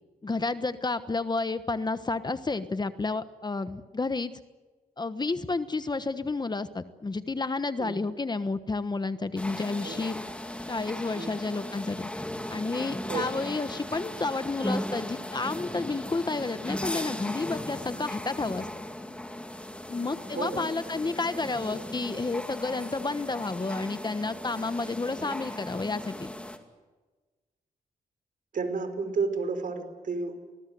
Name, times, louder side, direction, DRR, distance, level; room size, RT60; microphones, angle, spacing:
voice 1, 0.2-4.3 5.0-10.2 10.7-12.1 12.5-18.7 19.9-26.3, left 3 dB, 25° left, 12 dB, 1.2 m, -31 dB
sound 1, 9.4-26.6, left 1 dB, 5° left, 2.7 m, -37 dB
voice 2, 20.3-20.7 28.5-30.4, right 4 dB, 60° right, 9 dB, 4.5 m, -31 dB
25.0 x 20.0 x 9.4 m, 1.3 s
cardioid pair, 90°, 15 cm